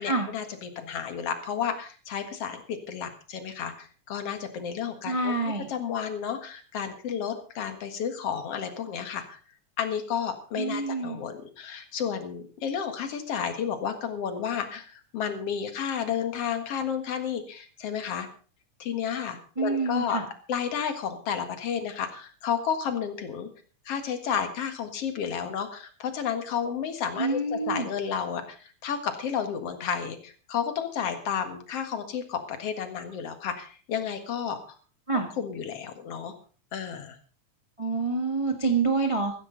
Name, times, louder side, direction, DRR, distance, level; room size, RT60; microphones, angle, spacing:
voice 1, 0.0-5.3 5.7-9.4 9.8-18.3 18.8-20.2 20.5-23.5 23.9-34.6 35.4-36.3 36.7-37.2, left 7 dB, 55° left, 8 dB, 2.5 m, -32 dB
voice 2, 5.0-5.7 10.6-11.2 19.6-20.2 27.2-27.9 35.1-35.3 37.8-39.4, right 3 dB, 25° right, 4 dB, 0.6 m, -27 dB
15.0 x 14.5 x 3.9 m, 0.39 s
omnidirectional pair, 3.4 m